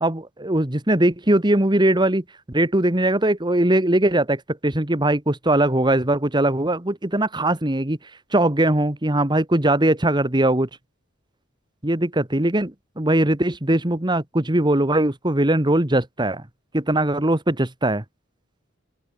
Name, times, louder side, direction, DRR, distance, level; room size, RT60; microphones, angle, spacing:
voice 1, 0.0-8.0 8.3-10.7 11.8-16.4 16.7-18.0, right 1 dB, 20° right, 1.6 m, -20 dB
head